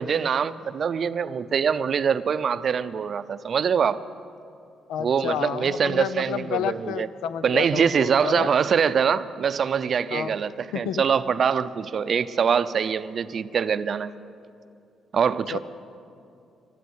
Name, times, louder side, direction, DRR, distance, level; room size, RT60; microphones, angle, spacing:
voice 1, 0.0-4.0 5.0-7.1 7.4-14.1 15.1-15.6, right 7 dB, 50° right, 14 dB, 0.5 m, -24 dB
voice 2, 4.9-8.5 10.1-10.4 10.7-11.0 15.5-15.6, left 9 dB, 85° left, 14 dB, 0.5 m, -30 dB
13.5 x 12.5 x 8.0 m, 2.5 s
cardioid pair, 90°, 0 cm